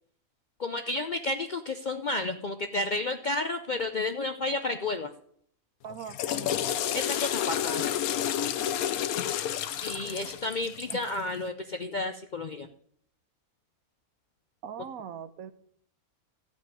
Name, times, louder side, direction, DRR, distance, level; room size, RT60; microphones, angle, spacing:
voice 1, 0.6-5.1 6.9-8.0 9.8-12.7, left 2 dB, 55° left, 7 dB, 0.5 m, -31 dB
voice 2, 5.8-6.6 10.9-11.0 14.6-15.5, right 8 dB, 75° right, 12 dB, 1.2 m, -41 dB
Water / Toilet flush, 5.9-11.1, left 10 dB, 80° left, 1.1 m, -30 dB
13.0 x 5.3 x 9.0 m, 0.64 s
omnidirectional pair, 1.5 m